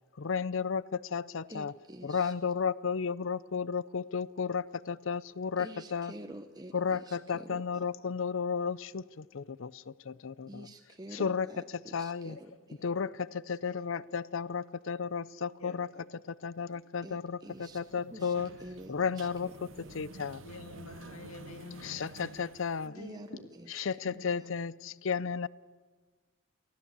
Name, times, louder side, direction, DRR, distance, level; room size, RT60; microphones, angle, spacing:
voice 1, 0.2-1.7 2.0-6.1 6.7-9.7 10.1-10.7 11.1-12.4 12.8-15.9 16.3-18.5 18.9-20.4 21.8-22.9 23.7-25.5, left 6 dB, 65° left, 20 dB, 0.5 m, -33 dB
voice 2, 1.5-2.3 5.6-7.6 10.5-11.6 12.0-12.8 17.0-17.8 18.1-18.3 18.6-19.5 23.0-23.8 24.2-24.3, right 1 dB, 20° right, 6 dB, 0.8 m, -47 dB
voice 3, 13.5-13.9 15.6-15.8 17.9-18.3 20.4-22.0 22.8-23.2 24.0-24.2, left 3 dB, 90° left, 8 dB, 2.0 m, -48 dB
sound 1, 17.5-22.9, right 3 dB, 60° right, 0.8 m, -51 dB
23.5 x 15.5 x 8.2 m, 1.4 s
head